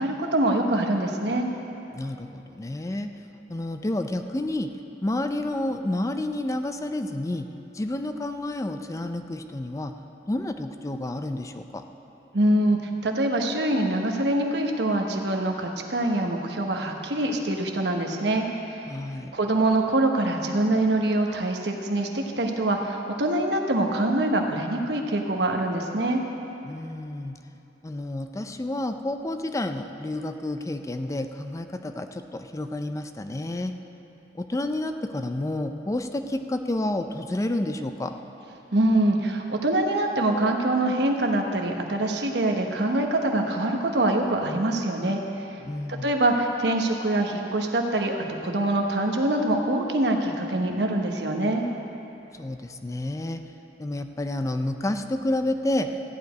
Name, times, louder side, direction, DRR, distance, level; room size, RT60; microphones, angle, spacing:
voice 1, 0.0-1.5 12.3-12.8 13.0-18.9 19.3-26.2 38.7-45.2 45.9-51.6, right 1 dB, 70° right, 2 dB, 1.1 m, -24 dB
voice 2, 1.9-3.1 3.5-4.7 5.0-7.5 7.7-9.9 10.3-11.8 18.9-19.3 26.6-27.4 27.8-33.7 34.3-38.1 45.6-46.1 52.4-53.4 53.8-55.9, left 1 dB, 20° left, 7 dB, 0.4 m, -30 dB
14.0 x 5.1 x 9.2 m, 2.9 s
head